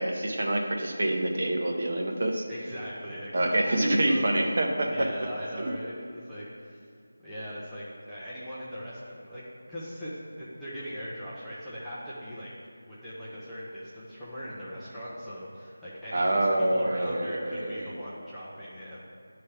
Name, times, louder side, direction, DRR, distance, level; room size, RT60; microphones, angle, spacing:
voice 1, 0.0-2.5 3.3-5.1 5.6-5.7 16.1-18.0, right 1 dB, 40° right, 1 dB, 0.7 m, -26 dB
voice 2, 2.5-4.4 4.9-6.8 7.2-9.4 9.7-12.5 12.8-19.1, equal, ahead, -15 dB, 0.5 m, -40 dB
9.8 x 3.3 x 5.7 m, 2.3 s
figure-of-eight pair, 180°, 0 cm